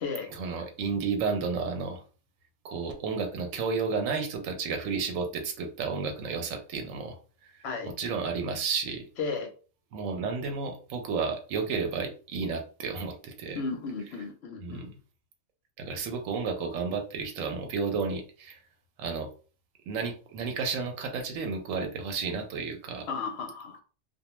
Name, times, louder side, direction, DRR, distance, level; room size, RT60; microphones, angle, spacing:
voice 1, 0.3-2.0 2.6-7.2 7.8-9.1 9.9-13.6 14.6-15.0 15.8-18.6 19.0-19.3 19.9-23.1, right 5 dB, 85° right, 4 dB, 1.0 m, -32 dB
voice 2, 9.2-9.5 13.5-14.9 23.1-23.8, left 4 dB, 65° left, 4 dB, 0.8 m, -34 dB
2.3 x 2.2 x 3.0 m, 0.37 s
omnidirectional pair, 1.3 m